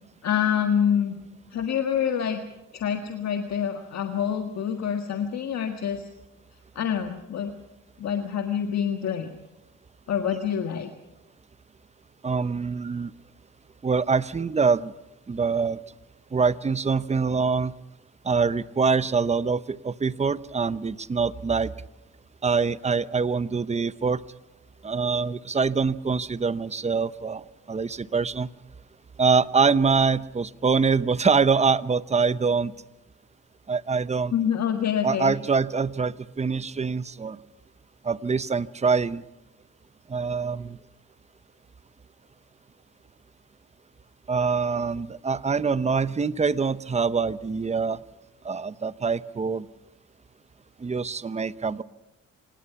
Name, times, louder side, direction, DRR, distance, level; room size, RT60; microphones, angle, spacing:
voice 1, 0.2-1.2 1.5-2.4 2.7-6.1 6.7-7.5 8.0-9.3 10.1-10.9 34.3-35.3, left 8 dB, 60° left, 6 dB, 1.7 m, -26 dB
voice 2, 12.2-13.1 13.8-14.9 15.3-15.8 16.3-17.7 18.2-21.7 22.4-24.2 24.8-27.4 27.7-28.5 29.2-32.7 33.7-34.3 35.0-37.4 38.0-39.2 40.1-40.8 44.3-48.0 48.4-49.7 50.8-51.8, right 5 dB, 20° right, 16 dB, 0.8 m, -24 dB
26.5 x 18.5 x 5.9 m, 0.95 s
cardioid pair, 90°, 30 cm